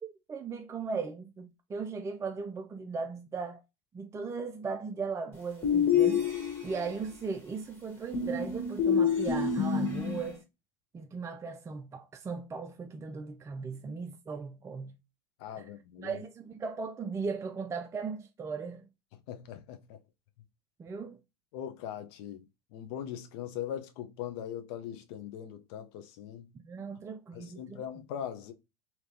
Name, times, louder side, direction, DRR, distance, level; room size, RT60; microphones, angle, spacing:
voice 1, 0.0-3.6 3.9-6.2 6.6-10.4 10.9-15.0 15.6-15.7 16.0-18.9 20.8-21.2 26.5-27.8, right 5 dB, 20° right, 0.4 m, -37 dB
sound 1, 5.6-6.9 8.1-10.3, left 7 dB, 15° left, 1.5 m, -27 dB
voice 2, 15.4-16.2 19.3-20.0 21.5-22.5 22.7-26.5 27.3-28.5, left 10 dB, 65° left, 0.6 m, -40 dB
3.2 x 2.8 x 2.6 m
hypercardioid pair, 85°, 15 cm